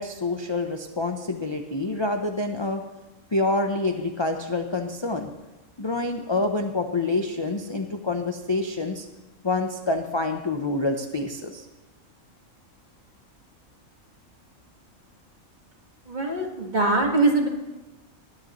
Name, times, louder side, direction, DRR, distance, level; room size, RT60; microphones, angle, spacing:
voice 1, 0.0-2.8 3.3-5.3 5.8-9.1 9.4-11.7, left 2 dB, 30° left, 4 dB, 0.6 m, -27 dB
voice 2, 16.1-17.5, right 2 dB, 35° right, 0 dB, 1.8 m, -22 dB
20.5 x 10.5 x 3.1 m, 1.1 s
omnidirectional pair, 1.4 m